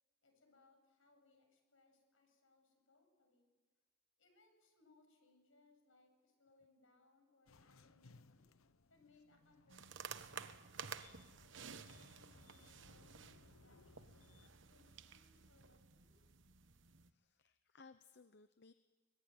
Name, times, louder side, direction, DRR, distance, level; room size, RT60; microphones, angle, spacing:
voice 1, 0.2-3.5 4.2-8.4 8.9-11.2 11.7-16.3, left 3 dB, 70° left, 4 dB, 7.9 m, -72 dB
sound 1, 7.5-14.5, left 3 dB, 85° left, 0.9 m, -66 dB
sound 2, 9.7-17.1, right 6 dB, 60° right, 1.1 m, -53 dB
voice 2, 17.0-18.7, left 4 dB, 55° left, 11 dB, 0.8 m, -64 dB
24.5 x 21.0 x 9.5 m, 1.3 s
head